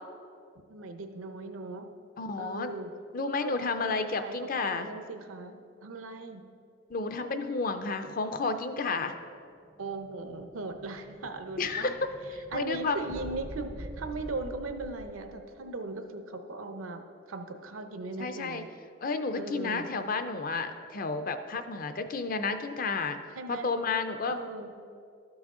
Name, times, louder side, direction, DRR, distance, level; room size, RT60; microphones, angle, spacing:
voice 1, 0.7-1.9 2.4-2.9 3.4-6.4 9.8-11.9 12.5-18.7 19.4-19.9 23.4-23.7 24.3-24.7, right 2 dB, 80° right, 7 dB, 0.7 m, -39 dB
voice 2, 2.2-2.7 3.1-4.9 6.9-9.1 11.6-12.0 12.3-13.0 18.2-18.6 19.0-23.2 23.5-24.4, left 4 dB, 40° left, 9 dB, 0.4 m, -31 dB
Explosion, 9.3-15.4, right 1 dB, 20° right, 0.4 m, -46 dB
12.5 x 6.2 x 3.7 m, 2.5 s
head